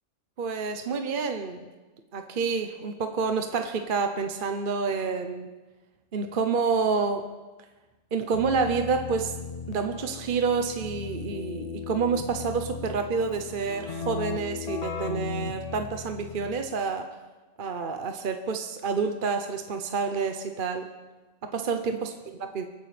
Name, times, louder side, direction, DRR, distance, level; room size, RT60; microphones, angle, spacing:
voice 1, 0.4-1.7 2.1-5.5 6.1-7.2 8.1-9.4 9.7-17.1 17.6-20.9 21.4-22.1 22.4-22.6, right 5 dB, 45° right, 6 dB, 0.9 m, -28 dB
Keyboard (musical), 8.3-16.7, left 5 dB, 60° left, 0.4 m, -37 dB
26.0 x 9.6 x 3.3 m, 1.2 s
omnidirectional pair, 1.4 m